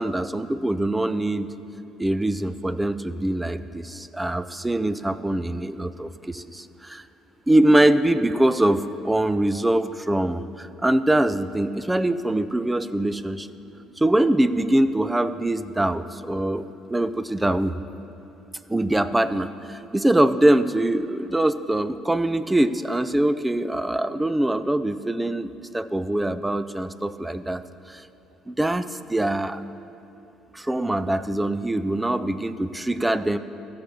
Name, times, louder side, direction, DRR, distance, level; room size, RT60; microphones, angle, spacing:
voice 1, 0.0-1.5 2.0-7.0 7.5-13.5 14.0-17.7 18.7-27.6 27.9-28.0 28.5-29.6 30.5-33.4, right 1 dB, 10° right, 13 dB, 0.4 m, -23 dB
14.5 x 6.8 x 5.3 m, 2.8 s
cardioid pair, 115°, 0 cm